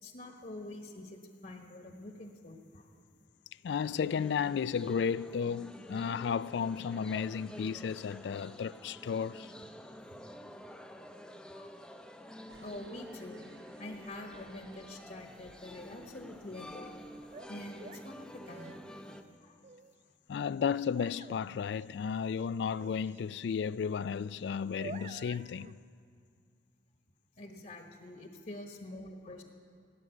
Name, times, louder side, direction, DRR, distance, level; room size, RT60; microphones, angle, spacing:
voice 1, 0.0-2.9 4.9-5.0 10.1-10.2 11.5-11.7 12.6-13.5 13.8-17.0 17.3-18.8 19.4-19.5 24.9-25.1 27.4-29.4, left 1 dB, 45° left, 1.3 m, -46 dB
voice 2, 3.6-9.5 20.3-25.8, left 6 dB, 70° left, 0.3 m, -33 dB
sound 1, 3.8-19.2, equal, 5° left, 0.6 m, -49 dB
sound 2, 12.5-17.9, right 2 dB, 60° right, 0.9 m, -62 dB
sound 3, 17.3-19.2 19.6-19.9 21.0-21.9 22.1-23.2 23.6-24.1 24.5-25.7, right 4 dB, 40° right, 0.3 m, -50 dB
17.0 x 9.6 x 7.8 m
head